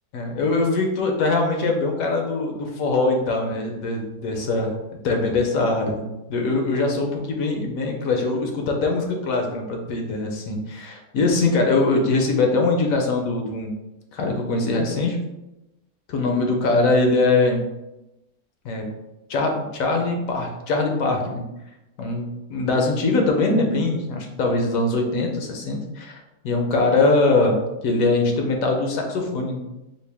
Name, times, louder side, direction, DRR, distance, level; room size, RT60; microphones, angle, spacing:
voice 1, 0.1-4.7 5.0-13.7 14.1-15.2 16.1-17.6 18.6-18.8 19.3-21.4 22.0-29.6, left 3 dB, 70° left, 2 dB, 1.0 m, -22 dB
4.2 x 2.2 x 3.4 m, 0.95 s
omnidirectional pair, 1.7 m